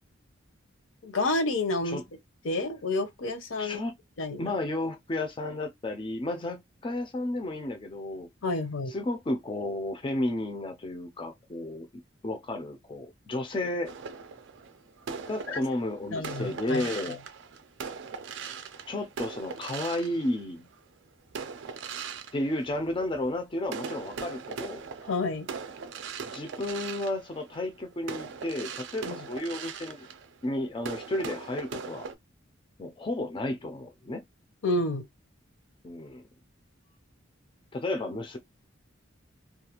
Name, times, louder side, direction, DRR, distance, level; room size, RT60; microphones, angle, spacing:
voice 1, 1.0-2.0 2.4-3.8 4.2-4.5 8.4-8.9 15.5-15.6 16.1-16.8 25.1-25.5 29.1-29.2 34.6-35.0, left 2 dB, 70° left, 0.7 m, -29 dB
voice 2, 3.6-4.0 4.4-8.3 8.9-11.9 12.2-13.9 15.2-17.2 18.9-20.7 22.3-24.8 26.3-30.1 30.4-32.1 32.8-34.2 35.8-36.2 37.7-38.4, left 1 dB, 25° left, 0.4 m, -32 dB
sound 1, 13.8-20.8 21.3-23.3 23.6-32.1, right 6 dB, 60° right, 0.4 m, -40 dB
2.4 x 2.3 x 2.8 m
head